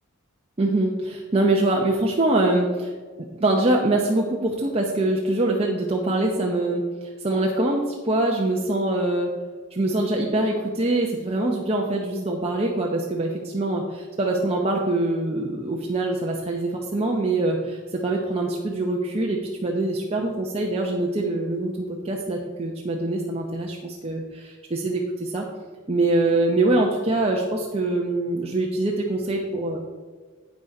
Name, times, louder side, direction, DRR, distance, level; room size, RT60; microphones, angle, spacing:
voice 1, 0.6-2.9 3.4-9.3 9.7-25.4 25.9-29.8, right 2 dB, 30° right, -1 dB, 0.7 m, -24 dB
8.6 x 6.2 x 5.2 m, 1.4 s
head